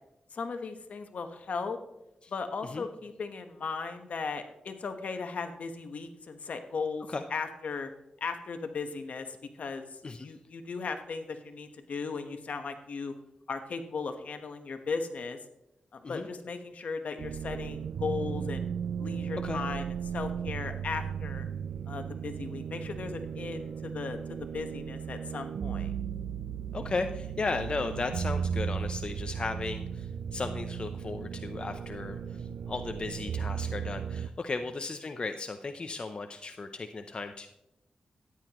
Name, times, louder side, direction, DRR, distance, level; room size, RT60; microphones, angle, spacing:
voice 1, 0.3-1.8 2.3-7.9 8.2-13.1 13.5-15.4 15.9-18.7 19.0-21.5 21.9-25.9, left 4 dB, 65° left, 7 dB, 1.2 m, -37 dB
sound 1, 17.2-34.3, right 7 dB, 85° right, 0.4 m, -36 dB
voice 2, 26.7-37.5, left 3 dB, 40° left, 7 dB, 0.6 m, -35 dB
13.5 x 10.0 x 3.0 m, 0.88 s
cardioid pair, 80°, 3 cm